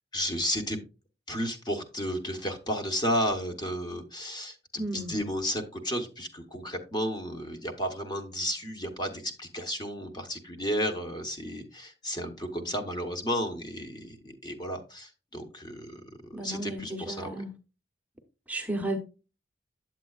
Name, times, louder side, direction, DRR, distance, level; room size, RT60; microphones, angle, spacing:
voice 1, 0.1-0.8 1.3-17.4, equal, 25° left, 1.0 m, -33 dB
voice 2, 4.8-5.1 16.3-17.5 18.5-19.0, right 1 dB, 10° right, 0.8 m, -33 dB
9.0 x 7.6 x 2.3 m
head